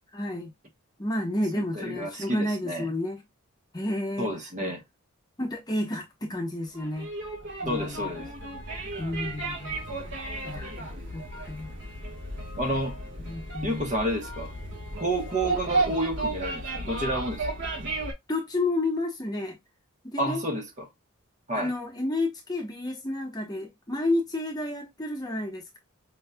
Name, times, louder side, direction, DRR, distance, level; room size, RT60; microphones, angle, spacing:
voice 1, 0.1-0.5 1.0-3.2 3.7-4.3 4.6-4.7 5.4-7.1 7.6-8.1 9.0-9.7 10.5-10.9 11.1-11.7 13.2-13.8 18.3-19.6 20.0-20.4 21.5-25.8, left 1 dB, 20° left, 0.9 m, -31 dB
voice 2, 1.5-2.9 4.2-4.8 7.7-8.3 12.6-13.0 13.6-14.5 15.0-17.5 20.2-20.9 21.5-21.7, right 1 dB, 35° right, 1.0 m, -30 dB
sound 1, 6.7-18.1, right 2 dB, 55° right, 1.5 m, -33 dB
5.3 x 3.1 x 2.2 m
head